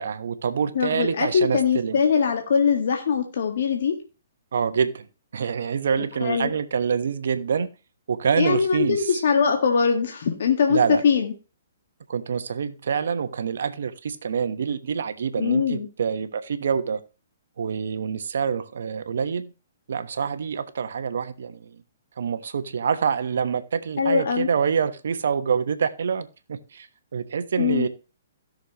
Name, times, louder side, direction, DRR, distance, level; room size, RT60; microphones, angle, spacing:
voice 1, 0.0-2.0 4.5-5.1 5.3-7.7 8.1-9.0 10.7-11.0 12.1-17.0 17.6-19.5 19.9-21.7 22.2-26.9 27.1-27.9, right 6 dB, 70° right, 1.1 m, -26 dB
voice 2, 0.7-4.0 6.0-6.5 8.4-11.3 15.4-15.9 24.0-24.5 27.6-27.9, left 6 dB, 65° left, 1.7 m, -22 dB
16.0 x 6.5 x 3.1 m
hypercardioid pair, 130°, 0 cm